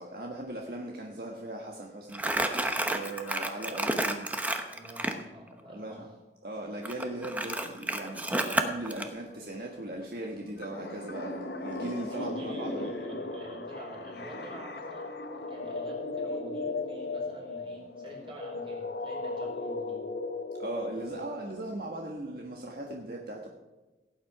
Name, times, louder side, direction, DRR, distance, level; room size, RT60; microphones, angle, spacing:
voice 1, 0.0-4.3 5.7-6.1 6.4-12.8 20.6-23.5, right 1 dB, 55° right, 0 dB, 1.4 m, -38 dB
Crumpling crinkling, 2.1-5.2 6.8-9.1, right 1 dB, 10° right, 0.9 m, -30 dB
sound 1, 2.7-4.7 7.7-7.8 8.0-21.6, left 3 dB, 70° left, 1.1 m, -37 dB
voice 2, 4.7-6.0 12.1-20.0, right 1 dB, 30° right, -1 dB, 4.3 m, -48 dB
17.0 x 9.2 x 4.8 m, 1.2 s
head